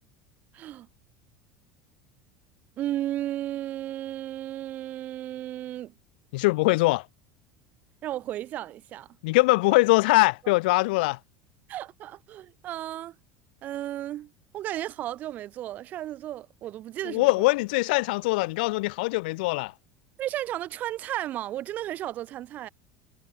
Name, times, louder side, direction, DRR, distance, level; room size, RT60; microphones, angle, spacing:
voice 1, 0.5-0.9 2.8-5.9 8.0-9.1 11.7-13.2 13.6-17.5 20.2-22.7, right 13 dB, 35° right, 1.8 m, -34 dB
voice 2, 6.3-7.1 9.2-11.2 17.1-19.7, left 23 dB, 75° left, 0.5 m, -22 dB
cardioid pair, 170°, 5 cm